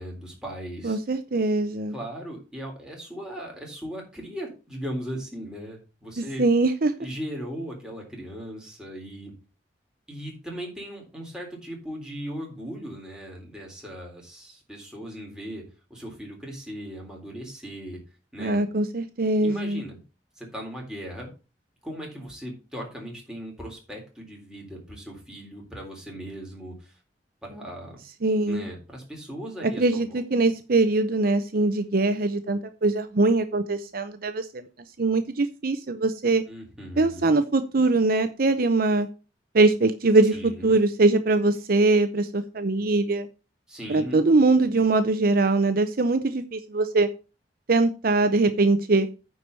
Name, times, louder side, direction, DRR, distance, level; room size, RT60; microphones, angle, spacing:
voice 1, 0.0-1.0 1.9-6.5 7.0-9.3 10.1-15.6 15.9-18.0 18.3-18.6 19.4-20.0 20.4-21.3 21.8-27.0 27.4-28.0 28.5-30.1 36.5-37.4 40.3-40.8 43.7-44.2, equal, 5° right, -1 dB, 3.7 m, -38 dB
voice 2, 0.8-1.9 6.2-6.9 18.4-19.8 28.2-28.6 29.8-34.7 35.0-36.4 37.0-39.1 39.5-43.3 43.9-47.1 47.7-49.1, right 2 dB, 55° right, 10 dB, 0.7 m, -22 dB
9.6 x 4.7 x 6.7 m, 0.32 s
head